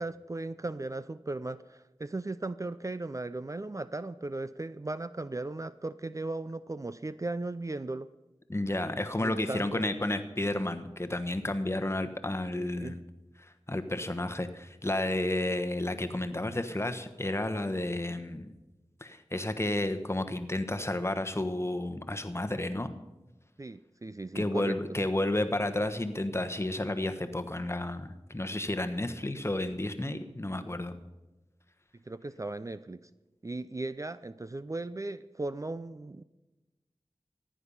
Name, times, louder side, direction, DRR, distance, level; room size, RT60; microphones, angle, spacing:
voice 1, 0.0-8.1 9.2-9.8 12.5-12.9 23.6-24.8 32.1-33.0 33.4-36.2, right 2 dB, 35° right, 14 dB, 0.4 m, -37 dB
voice 2, 8.5-13.0 13.4-18.5 19.0-23.0 24.3-31.0, left 1 dB, 25° left, 8 dB, 1.1 m, -31 dB
15.0 x 10.0 x 5.5 m, 1.1 s
wide cardioid pair, 50°, 10 cm